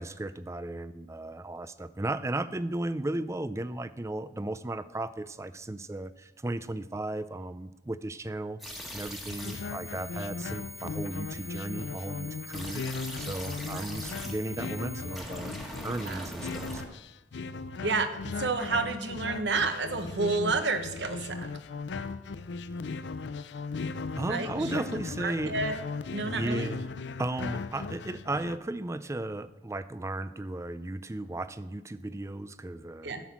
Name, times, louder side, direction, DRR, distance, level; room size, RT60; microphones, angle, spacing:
voice 1, 0.0-8.6 8.9-15.5 15.8-17.0 24.2-25.5 26.2-26.9 27.2-33.1, right 2 dB, 15° right, 14 dB, 0.4 m, -35 dB
Intense Computer Digital Glitch Transmission, 8.6-16.8, equal, ahead, 1.5 m, -42 dB
sound 1, 9.3-28.6, left 4 dB, 80° left, 0.5 m, -38 dB
voice 2, 17.8-21.5 24.3-24.8 25.2-25.8 26.1-26.7 33.0-33.2, right 3 dB, 85° right, 9 dB, 1.0 m, -30 dB
11.5 x 6.1 x 7.2 m, 0.99 s
head